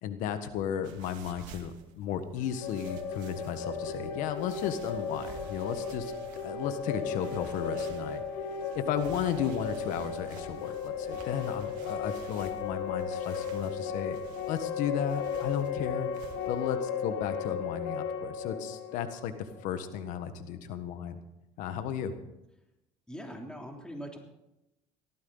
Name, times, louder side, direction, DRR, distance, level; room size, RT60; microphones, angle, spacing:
voice 1, 0.0-6.1 6.4-8.2 8.7-14.2 14.5-16.1 16.4-21.2 21.6-22.2, left 9 dB, 70° left, 10 dB, 1.5 m, -34 dB
sound 1, 0.8-16.7, right 7 dB, 75° right, 2.1 m, -52 dB
sound 2, 2.4-20.1, left 6 dB, 90° left, 1.9 m, -35 dB
voice 2, 23.1-24.2, equal, 5° left, 1 dB, 3.3 m, -41 dB
18.5 x 14.0 x 4.0 m, 0.90 s
supercardioid pair, 90°, 14 cm